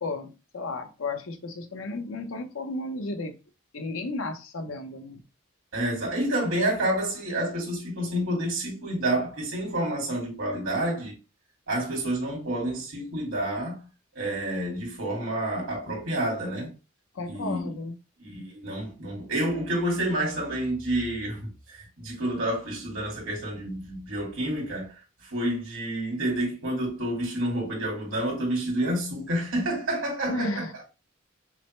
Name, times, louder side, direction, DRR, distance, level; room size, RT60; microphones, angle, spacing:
voice 1, 0.0-3.4 3.7-5.2 17.1-17.9 30.3-30.7, left 2 dB, 85° left, 0.8 m, -33 dB
voice 2, 5.7-11.1 11.7-13.8 14.1-16.7 17.3-17.7 18.2-24.9 25.3-30.6, right 1 dB, 85° right, 2.5 m, -29 dB
5.9 x 2.2 x 3.1 m
head